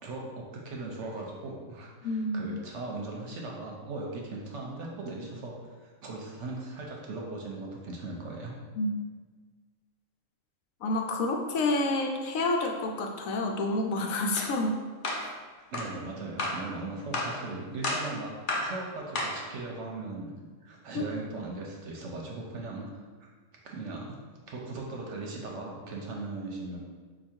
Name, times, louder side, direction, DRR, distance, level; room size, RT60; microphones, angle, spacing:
voice 1, 0.0-5.5 5.8-8.5 15.7-18.3 18.6-20.3 20.6-23.3 23.6-24.2 24.5-26.8, right 2 dB, 65° right, -1 dB, 0.9 m, -38 dB
voice 2, 2.0-2.5 8.8-8.9 10.8-14.7 16.2-16.3, left 2 dB, 75° left, 2 dB, 1.0 m, -29 dB
sound 1, 14.4-14.5 15.0-15.3 15.7-15.9 16.4-16.6 17.1-17.4 17.8-18.1 18.5-18.7 19.2-19.4, left 2 dB, 50° left, 0.6 m, -31 dB
4.8 x 2.5 x 4.3 m, 1.4 s
omnidirectional pair, 1.5 m